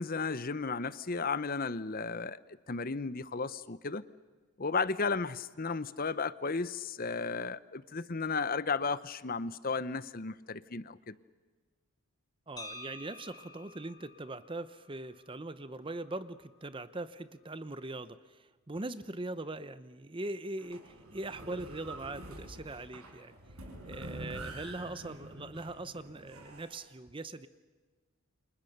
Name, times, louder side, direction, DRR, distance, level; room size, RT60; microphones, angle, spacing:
voice 1, 0.0-2.4 2.7-4.0 4.6-11.1, left 4 dB, 40° left, 16 dB, 0.8 m, -34 dB
voice 2, 12.5-23.4 23.8-27.5, right 2 dB, 20° right, 13 dB, 0.7 m, -41 dB
sound 1, 12.6-16.6, left 2 dB, 15° left, 2.4 m, -51 dB
sound 2, 20.6-26.8, right 1 dB, 80° right, 6.1 m, -46 dB
29.5 x 27.0 x 6.7 m, 1.4 s
head